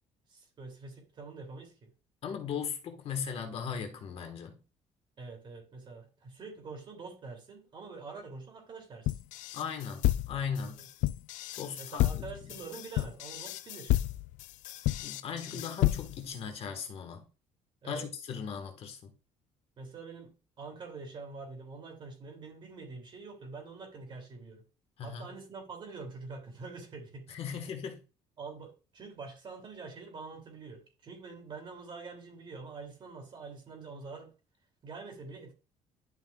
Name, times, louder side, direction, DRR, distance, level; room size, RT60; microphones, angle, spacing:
voice 1, 0.3-1.9 5.2-9.2 11.8-14.0 15.5-15.8 17.8-18.0 19.8-24.6 25.0-27.6 28.4-34.3 34.8-35.5, right 4 dB, 40° right, 2.7 m, -45 dB
voice 2, 2.2-4.6 9.5-10.8 11.6-12.5 15.0-17.2 17.8-19.1 25.0-25.3 27.3-28.0, left 7 dB, 50° left, 1.5 m, -38 dB
sound 1, 9.1-16.4, left 16 dB, 75° left, 0.4 m, -31 dB
11.0 x 5.8 x 2.4 m
cardioid pair, 130°, 13 cm